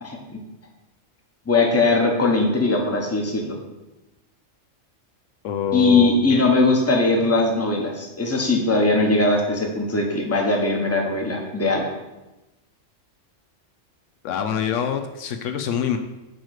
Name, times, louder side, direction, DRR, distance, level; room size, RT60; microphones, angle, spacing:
voice 1, 0.0-0.4 1.5-3.5 5.7-11.8, left 2 dB, 15° left, 1 dB, 0.9 m, -20 dB
voice 2, 5.4-6.5 14.2-16.0, left 8 dB, 75° left, 6 dB, 0.9 m, -25 dB
8.1 x 3.2 x 6.4 m, 1.0 s
omnidirectional pair, 1.3 m